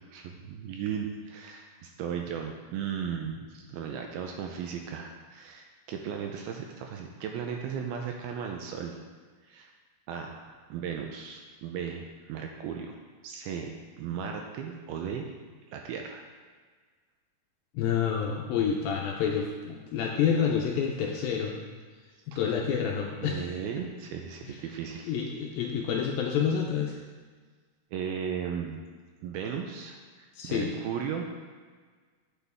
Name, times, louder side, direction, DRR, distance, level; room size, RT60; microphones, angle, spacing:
voice 1, 0.1-9.0 9.5-9.7 10.1-13.0 13.2-15.3 15.7-16.2 22.3-22.4 23.2-25.1 27.9-28.8 29.2-31.2, right 7 dB, 80° right, 3 dB, 2.3 m, -36 dB
voice 2, 17.7-21.6 22.4-23.5 25.1-26.9 30.4-30.7, left 7 dB, 80° left, 0 dB, 2.2 m, -28 dB
9.0 x 8.3 x 3.5 m, 1.5 s
omnidirectional pair, 4.7 m